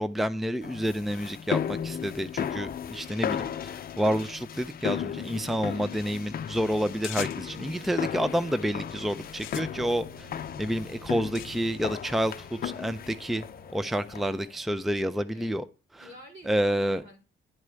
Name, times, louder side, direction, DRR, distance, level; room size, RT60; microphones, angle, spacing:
voice 1, 0.0-10.3 10.6-13.4 13.7-15.7 16.0-16.1 16.5-17.0, equal, ahead, 13 dB, 0.5 m, -29 dB
sound 1, 0.6-14.5, left 8 dB, 50° left, 0.6 m, -35 dB
sound 2, 7.0-7.7 8.4-8.8 9.2-11.5, left 15 dB, 90° left, 0.6 m, -42 dB
sound 3, 7.4-13.7, right 2 dB, 85° right, 1.1 m, -53 dB
voice 2, 16.0-17.2, equal, 70° right, 0 dB, 3.9 m, -50 dB
10.5 x 4.8 x 6.8 m, 0.33 s
cardioid pair, 90°, 20 cm